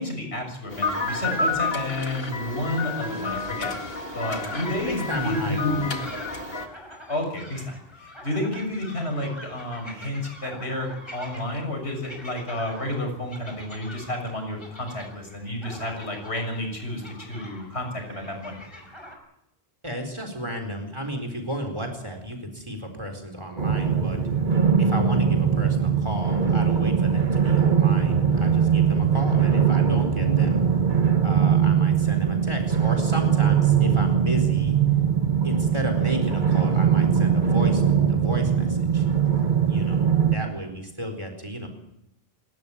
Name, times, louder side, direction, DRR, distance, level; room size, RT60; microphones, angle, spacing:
voice 1, 0.0-3.7 4.1-6.0 7.1-18.6, left 1 dB, 90° left, 3 dB, 7.1 m, -30 dB
sound 1, 0.7-6.7, left 3 dB, 65° left, 2.3 m, -30 dB
sound 2, 4.1-19.2, left 1 dB, 25° left, 5.6 m, -45 dB
voice 2, 4.9-5.9 19.8-24.2 24.8-30.6 31.2-34.8 35.4-39.1 39.7-41.7, equal, 25° right, 5 dB, 4.4 m, -33 dB
sound 3, 23.6-40.4, right 7 dB, 50° right, 1.7 m, -21 dB
28.0 x 13.5 x 8.8 m, 0.81 s
omnidirectional pair, 1.1 m